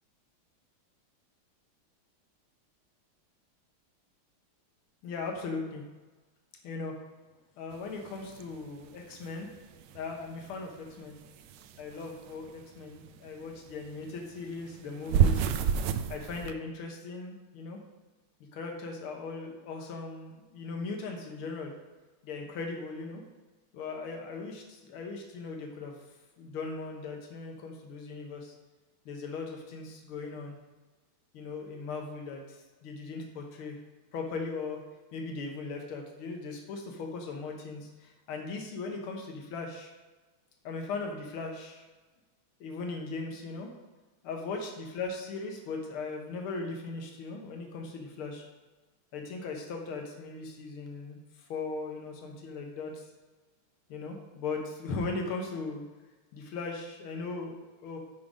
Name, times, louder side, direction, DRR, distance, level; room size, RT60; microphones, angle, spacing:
voice 1, 5.0-5.8 6.6-6.9 7.6-9.5 9.9-11.2 11.8-15.5 16.1-17.8 18.5-21.7 22.2-23.2 23.7-25.9 26.4-28.5 29.1-30.6 31.3-33.8 34.1-34.8 35.1-39.9 40.6-41.9 42.6-43.7 44.2-48.5 49.1-53.1 53.9-55.8 56.3-58.0, left 4 dB, 80° left, 2 dB, 1.9 m, -38 dB
sound 1, 7.7-10.6 10.9-13.8 14.0-16.5, right 8 dB, 75° right, 1.0 m, -30 dB
10.0 x 3.8 x 5.1 m, 1.2 s
omnidirectional pair, 2.3 m